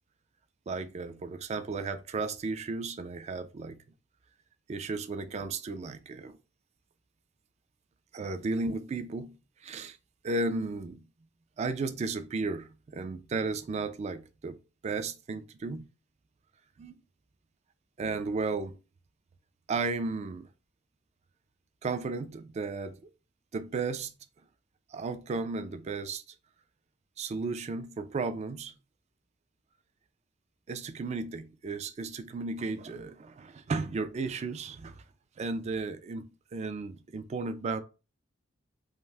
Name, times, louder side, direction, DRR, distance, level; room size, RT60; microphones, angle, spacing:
voice 1, 0.7-3.8 4.7-6.4 8.1-10.0 10.2-11.0 11.6-15.9 16.8-17.0 18.0-18.8 19.7-20.5 21.8-23.1 23.5-24.2 24.9-26.2 27.2-28.8 30.7-35.0 35.4-37.8, right 3 dB, 35° right, 0.3 m, -34 dB
2.5 x 2.2 x 3.3 m
head